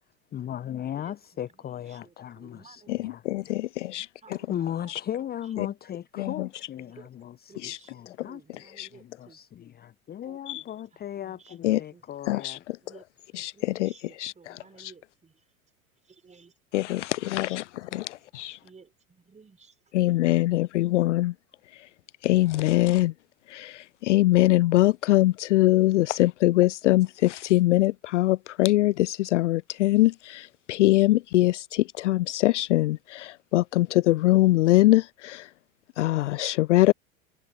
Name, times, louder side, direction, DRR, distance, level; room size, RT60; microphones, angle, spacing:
voice 1, 0.3-2.8 3.1-3.2 4.3-8.4 9.2-12.6, left 10 dB, 20° left, 1.0 m, -36 dB
voice 2, 0.8-3.5 4.2-5.5 6.8-9.4 10.2-10.5 10.9-11.6 11.9-12.1 12.8-15.5 16.0-17.6 17.9-19.8 20.1-20.2, right 5 dB, 15° right, 4.7 m, -56 dB
voice 3, 3.3-4.1 4.9-5.0 5.6-5.7 6.2-6.5 7.6-7.8 8.2-8.3 8.8-8.9 10.5-10.6 11.6-11.8 12.3-12.8 13.4-13.5 13.8-13.9 14.2-14.5 16.7-17.6 17.9-18.6 19.9-21.3 21.7-21.9 22.2-23.1 23.5-35.5 36.0-36.9, left 17 dB, 60° left, 0.5 m, -23 dB
figure-of-eight pair, 80°, 42 cm